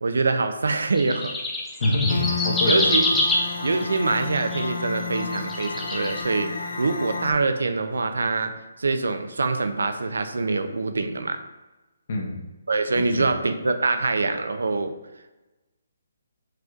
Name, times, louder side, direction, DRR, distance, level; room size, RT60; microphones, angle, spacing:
voice 1, 0.0-1.3 2.6-3.1 3.6-8.5 8.8-11.4 12.7-15.0, right 3 dB, 85° right, 8 dB, 0.5 m, -24 dB
sound 1, 0.9-4.6 5.2-6.2, left 1 dB, 5° left, 0.5 m, -25 dB
voice 2, 1.8-2.9 12.1-12.4 12.9-13.3, left 1 dB, 50° left, -1 dB, 1.2 m, -25 dB
sound 2, 2.1-7.3, left 4 dB, 75° left, 0.7 m, -31 dB
4.8 x 4.4 x 2.5 m, 1.1 s
hypercardioid pair, 160°, 0 cm